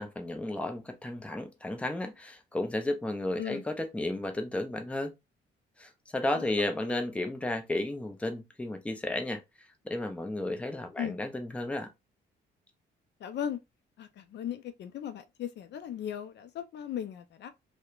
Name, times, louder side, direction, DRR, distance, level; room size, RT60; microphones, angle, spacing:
voice 1, 0.0-5.1 5.8-9.4 9.8-11.9, left 1 dB, 5° left, 0.5 m, -33 dB
voice 2, 13.2-13.6 14.0-17.5, left 9 dB, 60° left, 0.4 m, -37 dB
2.8 x 2.1 x 2.3 m
cardioid pair, 90°, 20 cm